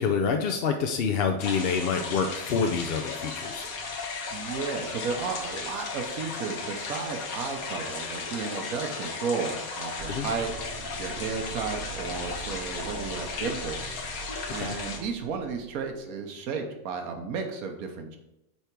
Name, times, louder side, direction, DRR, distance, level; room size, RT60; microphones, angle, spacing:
voice 1, 0.0-3.7 10.1-10.3 14.6-14.7, left 5 dB, 60° left, 5 dB, 0.6 m, -27 dB
sound 1, 1.4-15.0, left 4 dB, 85° left, 1.5 m, -36 dB
voice 2, 4.3-10.5 11.0-13.9 14.5-18.2, right 5 dB, 80° right, 4 dB, 1.4 m, -33 dB
sound 2, 10.0-16.0, right 4 dB, 50° right, 0.8 m, -43 dB
8.8 x 3.4 x 4.5 m, 0.89 s
omnidirectional pair, 1.5 m